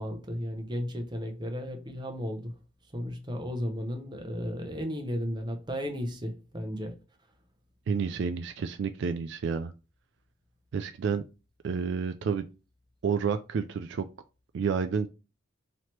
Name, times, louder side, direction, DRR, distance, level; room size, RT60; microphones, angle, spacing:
voice 1, 0.0-2.5 2.9-7.0, equal, 20° right, 0.7 m, -34 dB
voice 2, 7.9-9.7 10.7-11.2 11.6-12.4 13.0-14.1 14.5-15.1, right 6 dB, 60° right, 0.3 m, -29 dB
3.1 x 2.9 x 4.4 m
head